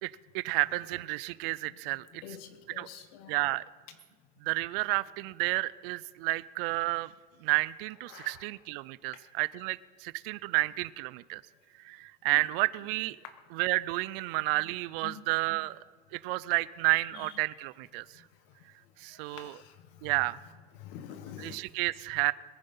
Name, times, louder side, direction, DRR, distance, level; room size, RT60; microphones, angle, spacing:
voice 1, 0.0-2.2 2.7-2.9 3.3-3.6 4.4-7.1 7.4-11.4 11.8-13.2 13.5-15.8 16.1-18.2 19.0-19.6 20.0-20.4 21.4-22.3, right 22 dB, 65° right, 19 dB, 0.5 m, -31 dB
voice 2, 2.2-3.4 8.1-8.4 12.3-12.4 13.2-13.3 15.0-15.6 16.9-17.3 19.1-19.8 20.0-20.1 20.8-21.6, left 9 dB, 65° left, 9 dB, 1.3 m, -47 dB
21.0 x 9.1 x 5.5 m, 1.5 s
supercardioid pair, 165°, 31 cm